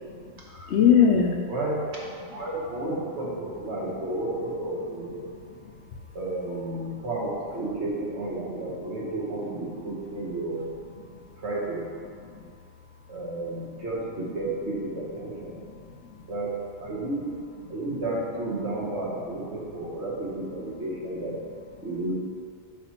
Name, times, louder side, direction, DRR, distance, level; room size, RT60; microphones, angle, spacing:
voice 1, 0.7-1.3 5.2-5.8 11.1-11.2 12.3-12.5 15.6-16.2, left 7 dB, 65° left, 2 dB, 0.8 m, -23 dB
voice 2, 1.5-2.0 2.3-5.2 6.1-10.7 11.4-11.9 13.1-15.6 16.3-17.4 17.7-21.4 21.8-22.1, right 2 dB, 55° right, -4 dB, 1.5 m, -32 dB
7.2 x 2.9 x 5.7 m, 2.2 s
omnidirectional pair, 1.4 m